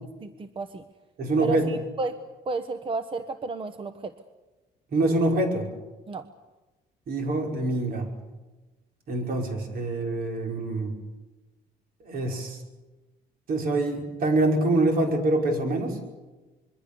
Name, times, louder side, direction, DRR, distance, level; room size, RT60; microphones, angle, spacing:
voice 1, 0.2-0.8 1.4-2.2 2.5-4.1 6.1-6.2, right 3 dB, 30° right, 10 dB, 1.1 m, -31 dB
voice 2, 1.2-1.6 4.9-5.7 7.1-8.1 9.1-10.9 12.1-12.6 13.5-16.0, right 2 dB, 60° right, 3 dB, 5.5 m, -25 dB
26.0 x 22.5 x 7.0 m, 1.2 s
cardioid pair, 110°, 17 cm